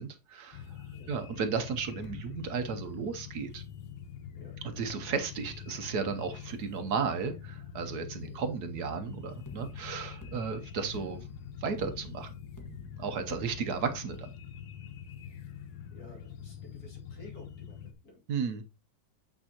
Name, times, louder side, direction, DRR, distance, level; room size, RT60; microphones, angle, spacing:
voice 1, 0.0-0.8 1.1-3.6 4.8-11.2 11.6-12.3 13.0-14.3 18.3-18.6, right 5 dB, 65° right, 8 dB, 1.3 m, -34 dB
sound 1, 0.5-17.9, left 8 dB, 80° left, 1.4 m, -45 dB
voice 2, 0.9-1.3 4.3-4.6 8.2-8.4 15.2-15.6 15.9-18.5, left 1 dB, 55° left, -1 dB, 3.0 m, -54 dB
sound 2, 9.5-14.2, left 2 dB, 10° left, 1.1 m, -51 dB
8.7 x 5.4 x 2.9 m, 0.28 s
omnidirectional pair, 1.9 m